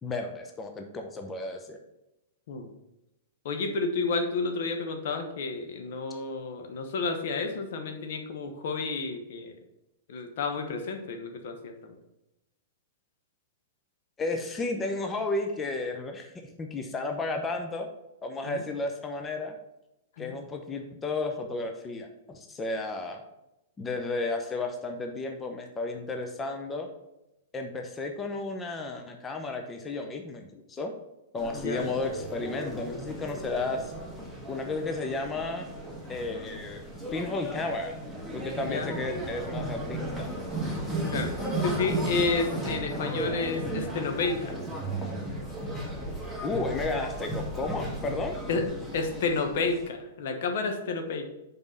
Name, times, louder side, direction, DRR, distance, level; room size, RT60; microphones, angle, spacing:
voice 1, 0.0-1.8 14.2-17.9 18.2-19.5 20.2-23.2 23.8-26.9 27.5-30.9 31.3-33.9 34.5-35.7 36.1-37.9 38.3-40.3 46.4-48.4, left 3 dB, 20° left, 4 dB, 0.8 m, -33 dB
voice 2, 3.4-9.5 10.1-12.0 18.4-18.6 20.2-20.3 31.5-32.0 38.6-39.0 41.1-41.3 41.6-44.5 48.5-48.6 48.9-51.3, left 4 dB, 60° left, 5 dB, 1.0 m, -31 dB
sound 1, 31.4-49.9, right 1 dB, 5° left, 1.5 m, -35 dB
5.2 x 4.7 x 5.6 m, 0.92 s
hypercardioid pair, 110°, 0 cm